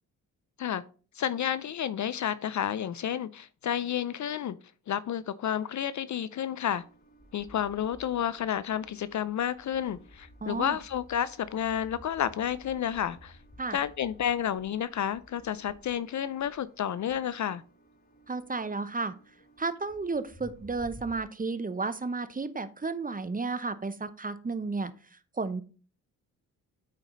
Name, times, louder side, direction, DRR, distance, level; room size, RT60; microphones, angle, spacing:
voice 1, 1.1-4.6 4.9-6.8 7.3-13.4 13.7-17.6, left 9 dB, 45° left, 0.5 m, -31 dB
sound 1, 6.6-21.2, equal, 20° left, 3.1 m, -54 dB
voice 2, 10.4-10.8 13.6-13.8 18.3-19.1 19.6-25.6, right 3 dB, 20° right, 0.7 m, -33 dB
8.3 x 4.9 x 3.8 m
hypercardioid pair, 50°, 42 cm